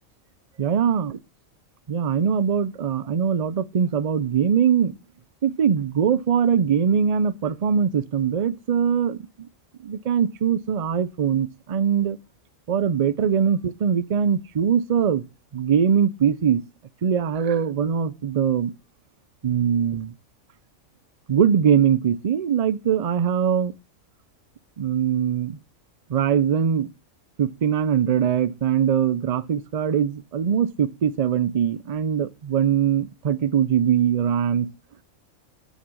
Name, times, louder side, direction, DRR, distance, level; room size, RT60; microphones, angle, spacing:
voice 1, 0.6-1.1 1.9-5.0 5.4-9.5 9.8-12.2 12.7-15.2 15.5-16.6 17.0-18.7 19.4-20.1 21.3-23.7 24.8-25.6 26.1-26.9 27.4-34.7, right 8 dB, 55° right, 0.4 m, -22 dB
8.3 x 7.2 x 6.1 m
omnidirectional pair, 1.4 m